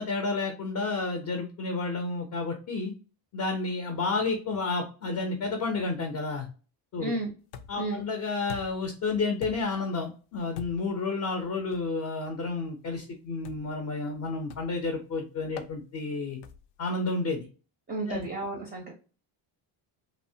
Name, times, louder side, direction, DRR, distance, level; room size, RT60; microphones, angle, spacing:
voice 1, 0.0-2.9 3.3-6.5 6.9-7.2 7.7-16.4 16.8-17.5 18.1-18.3, left 3 dB, 40° left, 3 dB, 0.5 m, -31 dB
voice 2, 7.0-7.3 7.8-8.0 17.9-18.9, right 2 dB, 20° right, 0 dB, 0.4 m, -32 dB
sound 1, 7.5-8.0 8.5-8.9 9.4-9.9 10.6-11.0 11.7-11.9 13.4-13.8 14.5-14.9 15.6-15.8 16.4-16.8, left 7 dB, 85° left, 0.6 m, -44 dB
3.0 x 2.1 x 2.6 m, 0.35 s
cardioid pair, 175°, 49 cm